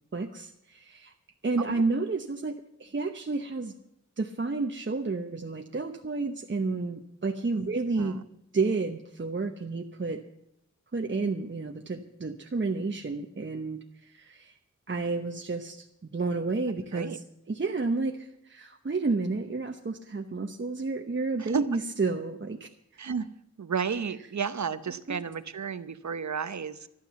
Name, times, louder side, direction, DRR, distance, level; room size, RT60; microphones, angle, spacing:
voice 1, 0.1-1.1 1.4-3.8 4.2-8.2 8.5-10.2 10.9-14.6 14.9-17.2 17.5-23.1 25.1-25.2, right 3 dB, 40° right, 3 dB, 1.0 m, -31 dB
voice 2, 21.4-21.8 23.0-23.3 23.6-26.9, right 6 dB, 70° right, 13 dB, 0.8 m, -33 dB
12.5 x 12.0 x 7.0 m, 0.80 s
wide cardioid pair, 90°, 29 cm